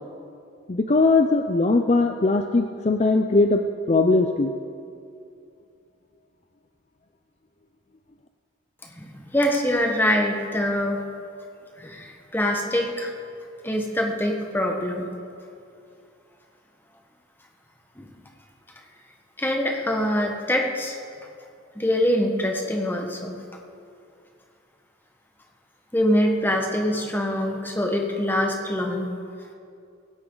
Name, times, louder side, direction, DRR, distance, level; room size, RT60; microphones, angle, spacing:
voice 1, 0.7-3.6 3.9-4.5, left 3 dB, 35° left, 6 dB, 0.5 m, -20 dB
voice 2, 8.8-11.0 11.8-13.1 13.6-15.1 18.0-18.1 19.4-21.0 21.7-23.4 25.9-29.1, equal, 10° left, 2 dB, 1.3 m, -24 dB
17.5 x 17.0 x 3.9 m, 2.5 s
head